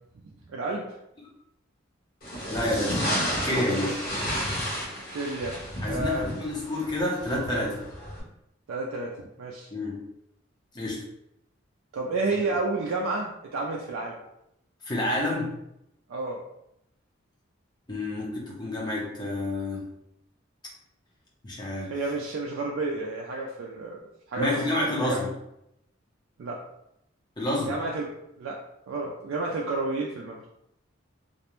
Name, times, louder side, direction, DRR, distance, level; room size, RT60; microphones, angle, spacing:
voice 1, 0.5-0.9 5.1-6.3 8.7-9.7 11.9-14.2 16.1-16.4 21.9-24.0 24.3-25.2 26.4-26.6 27.7-28.1 28.4-28.6 28.9-30.4, right 2 dB, 70° right, -2 dB, 0.3 m, -31 dB
sound 1, 2.2-8.2, equal, 45° left, 0.9 m, -32 dB
voice 2, 2.5-3.0 3.3-4.0 5.8-7.8 9.7-10.0 10.7-11.0 14.8-15.5 17.9-19.9 21.4-21.9 24.4-25.3 27.4-27.7, left 1 dB, 20° left, -3 dB, 0.5 m, -29 dB
2.4 x 2.1 x 2.9 m, 0.81 s
head